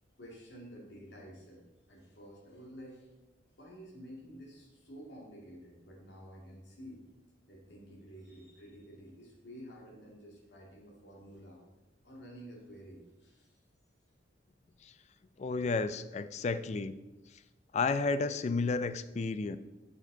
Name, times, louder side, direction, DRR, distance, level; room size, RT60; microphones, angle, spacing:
voice 1, 0.2-3.1 3.6-7.1 7.5-11.6 12.0-13.5, equal, 65° left, -2 dB, 2.2 m, -51 dB
voice 2, 15.4-17.0 17.7-19.6, left 4 dB, 35° left, 13 dB, 0.3 m, -32 dB
7.2 x 6.4 x 3.9 m, 1.0 s
head